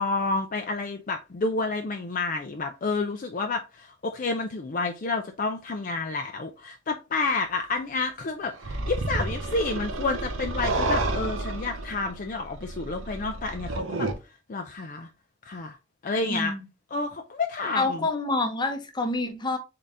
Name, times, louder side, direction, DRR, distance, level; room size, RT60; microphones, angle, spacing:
voice 1, 0.0-14.1 14.5-15.1 15.5-15.8 16.0-16.5 16.9-18.1, left 3 dB, 40° left, 0.4 m, -30 dB
sound 1, 8.6-14.1, right 2 dB, 85° right, 0.8 m, -30 dB
voice 2, 16.3-16.7 17.7-19.6, left 2 dB, 20° left, 0.8 m, -27 dB
4.1 x 3.8 x 3.4 m
head